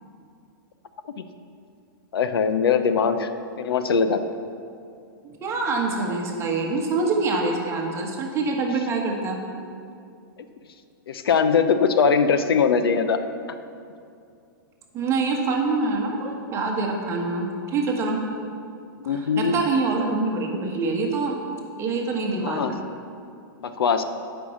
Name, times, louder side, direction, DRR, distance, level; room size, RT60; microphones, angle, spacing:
voice 1, 2.1-3.3 3.6-4.4 11.1-13.2 19.1-19.5 22.4-22.7 23.6-24.0, left 6 dB, 85° left, 9 dB, 0.7 m, -21 dB
voice 2, 5.2-9.4 14.9-18.2 19.0-21.4 21.8-22.8, right 3 dB, 20° right, 0 dB, 1.3 m, -25 dB
8.6 x 5.5 x 7.1 m, 2.4 s
hypercardioid pair, 140°, 12 cm